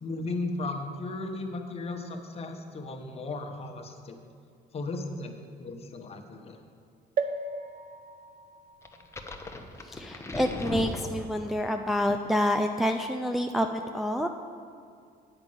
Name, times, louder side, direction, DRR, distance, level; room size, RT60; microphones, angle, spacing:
voice 1, 0.0-4.2 4.7-5.3 5.6-6.6, left 2 dB, 35° left, 4 dB, 1.0 m, -35 dB
sound 1, 7.2-10.8 11.4-11.5 11.7-11.8, right 4 dB, 55° right, 0.6 m, -37 dB
sound 2, 8.9-11.7, left 1 dB, 15° left, 0.8 m, -37 dB
voice 2, 9.8-14.3, equal, ahead, 4 dB, 0.3 m, -28 dB
9.0 x 5.2 x 7.7 m, 2.3 s
cardioid pair, 110°, 17 cm